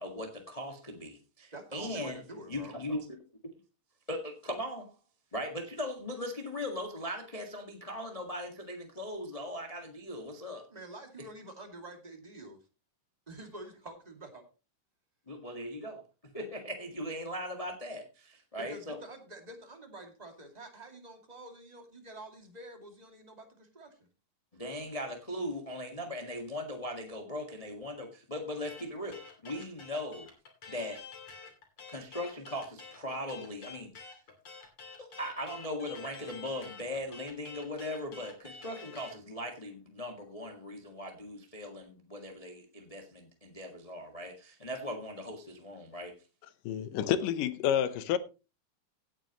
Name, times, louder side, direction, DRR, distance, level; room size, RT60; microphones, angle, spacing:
voice 1, 0.0-2.2 2.5-3.2 4.1-5.0 5.3-10.7 11.2-11.3 15.3-19.0 24.5-30.3 30.7-31.0 31.9-34.0 35.0-46.1, left 1 dB, 20° left, 0.8 m, -39 dB
voice 2, 1.5-2.8 10.7-12.6 13.3-14.5 18.6-24.1, right 2 dB, 15° right, 1.9 m, -48 dB
sound 1, 28.6-39.2, left 5 dB, 45° left, 3.6 m, -49 dB
voice 3, 46.7-48.2, left 10 dB, 85° left, 2.5 m, -29 dB
17.0 x 8.9 x 3.0 m
omnidirectional pair, 3.7 m